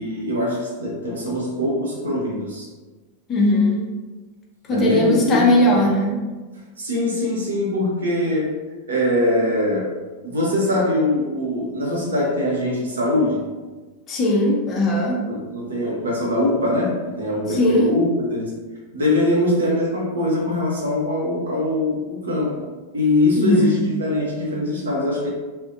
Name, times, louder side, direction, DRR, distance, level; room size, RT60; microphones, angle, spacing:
voice 1, 0.0-2.7 4.7-5.6 6.8-8.5 8.9-9.9 10.2-13.4 15.3-18.5 18.9-22.7 22.9-25.3, left 1 dB, 70° right, -3 dB, 0.7 m, -22 dB
voice 2, 3.3-3.9 4.7-6.2 14.1-15.2 17.5-17.9 23.4-23.9, left 1 dB, 30° left, -2 dB, 0.5 m, -18 dB
2.4 x 2.1 x 2.5 m, 1.3 s
figure-of-eight pair, 90°, 0 cm